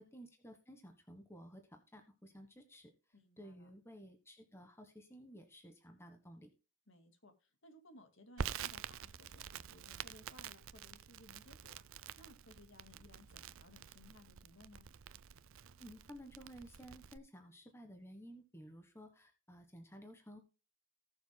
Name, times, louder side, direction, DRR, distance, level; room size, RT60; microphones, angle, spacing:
voice 1, 0.0-2.9 3.4-6.5 15.8-20.4, equal, 10° left, 6 dB, 1.3 m, -55 dB
voice 2, 3.1-3.7 6.9-14.8, left 1 dB, 60° left, 7 dB, 2.1 m, -61 dB
Crackle, 8.4-17.2, right 7 dB, 65° right, 0.5 m, -48 dB
18.5 x 7.1 x 2.2 m, 0.32 s
head